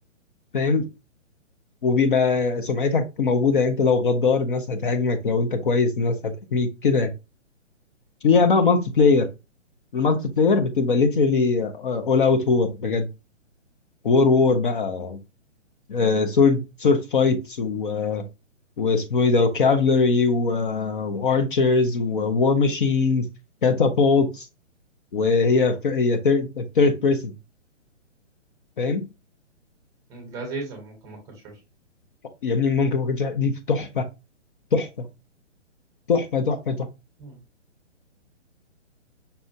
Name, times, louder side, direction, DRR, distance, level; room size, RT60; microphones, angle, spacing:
voice 1, 0.5-0.9 1.8-7.1 8.2-9.3 9.9-13.1 14.0-15.2 15.9-18.3 18.8-23.3 23.6-24.5 25.1-27.3 28.8-29.1 32.4-34.0 34.7-34.9 36.1-36.8, left 4 dB, 45° left, 7 dB, 0.5 m, -21 dB
voice 2, 30.1-31.6 37.2-37.4, right 3 dB, 10° right, 1 dB, 0.7 m, -37 dB
5.4 x 2.3 x 2.6 m, 0.26 s
hypercardioid pair, 150°, 37 cm